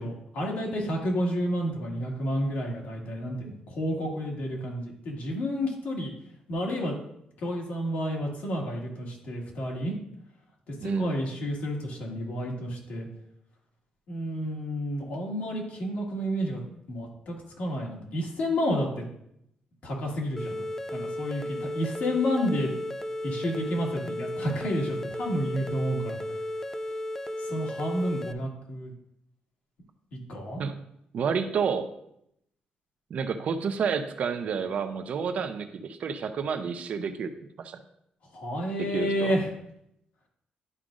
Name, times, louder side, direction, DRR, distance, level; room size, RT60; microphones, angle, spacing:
voice 1, 0.0-6.1 6.5-7.0 7.4-9.9 10.8-13.1 14.1-16.6 16.9-19.0 19.8-22.7 23.2-26.2 27.4-28.9 30.1-30.6 38.3-39.5, equal, 70° left, -2 dB, 1.9 m, -30 dB
voice 2, 10.8-11.2 30.6-30.8 31.1-31.8 33.1-37.3 37.6-37.8 38.9-39.3, right 6 dB, 55° right, 8 dB, 0.5 m, -29 dB
sound 1, 20.4-28.3, left 1 dB, 15° left, 0.3 m, -34 dB
11.0 x 5.0 x 2.5 m, 0.75 s
cardioid pair, 165°, 3 cm